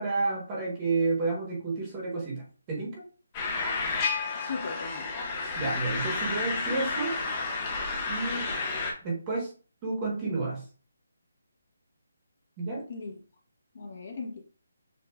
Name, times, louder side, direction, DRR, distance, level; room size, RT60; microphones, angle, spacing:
voice 1, 0.0-3.0 5.6-7.2 8.1-8.5 9.0-9.5 9.8-10.6 12.6-12.9, right 3 dB, 15° right, 1.1 m, -30 dB
sound 1, 3.3-8.9, left 4 dB, 15° left, 0.7 m, -31 dB
voice 2, 4.3-5.1 12.9-13.2 13.7-14.4, left 4 dB, 45° left, 1.0 m, -38 dB
6.7 x 2.5 x 2.3 m
hypercardioid pair, 175°, 0 cm